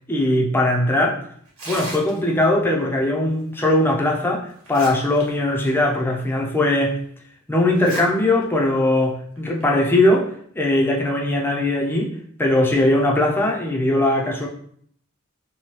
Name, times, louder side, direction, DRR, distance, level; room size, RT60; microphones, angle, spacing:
voice 1, 0.1-1.2 1.7-7.0 7.5-12.1 12.4-14.5, left 1 dB, 10° left, 0.5 m, -20 dB
Tearing, 1.5-2.4 3.9-4.0 4.5-5.2 5.6-5.7 6.4-6.5 7.7-8.0 8.4-8.5 9.4-9.6, right 1 dB, 75° right, 1.2 m, -35 dB
2.9 x 2.7 x 3.1 m
head